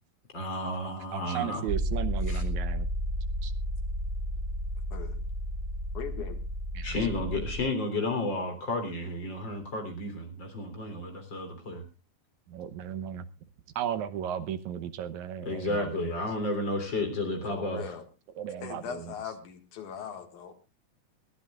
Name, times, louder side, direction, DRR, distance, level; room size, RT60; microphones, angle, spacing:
voice 1, 0.3-1.7 2.3-2.4 6.8-11.8 15.5-18.0, left 2 dB, 40° left, 5 dB, 4.0 m, -32 dB
voice 2, 1.1-2.9 3.4-3.5 6.7-7.0 12.5-13.3 13.8-16.2 18.4-19.1, right 10 dB, 75° right, 11 dB, 2.3 m, -35 dB
sound 1, 1.7-7.6, equal, 50° right, 0.9 m, -32 dB
voice 3, 4.9-5.2 5.9-6.4 17.5-18.1 18.6-20.5, left 8 dB, 90° left, 7 dB, 3.3 m, -40 dB
22.0 x 14.5 x 2.4 m, 0.29 s
omnidirectional pair, 3.4 m